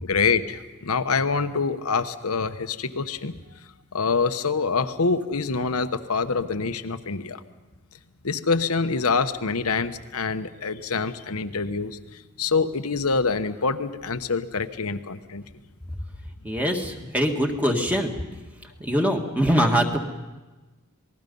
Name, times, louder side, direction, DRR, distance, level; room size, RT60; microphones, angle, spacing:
voice 1, 0.0-3.3 3.9-7.4 8.2-15.4, left 4 dB, 90° left, 10 dB, 1.1 m, -25 dB
voice 2, 16.4-18.1 18.8-20.0, equal, 5° right, 3 dB, 1.8 m, -23 dB
27.5 x 20.0 x 5.4 m, 1.2 s
head